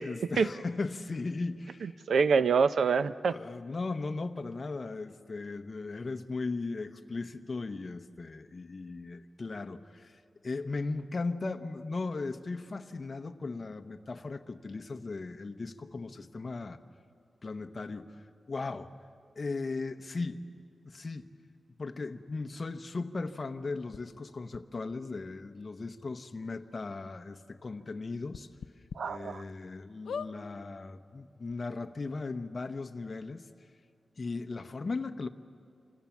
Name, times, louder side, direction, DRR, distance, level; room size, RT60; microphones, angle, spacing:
voice 1, 0.0-2.0 3.3-16.8 17.4-18.9 19.4-20.4 20.8-21.2 21.8-28.5 29.0-33.5 34.2-35.3, left 3 dB, 35° left, 6 dB, 0.9 m, -37 dB
voice 2, 1.8-3.3 29.0-29.4, right 5 dB, 75° right, 13 dB, 0.6 m, -26 dB
sound 1, 23.9-24.0 24.5-24.6 25.6-25.7 26.0-26.1 26.5-26.6 28.3-29.0 29.5-29.6 30.0-30.3 31.2-31.3 31.5-31.6, left 6 dB, 85° left, 0.6 m, -39 dB
28.0 x 26.0 x 7.2 m, 2.3 s
wide cardioid pair, 150°, 0 cm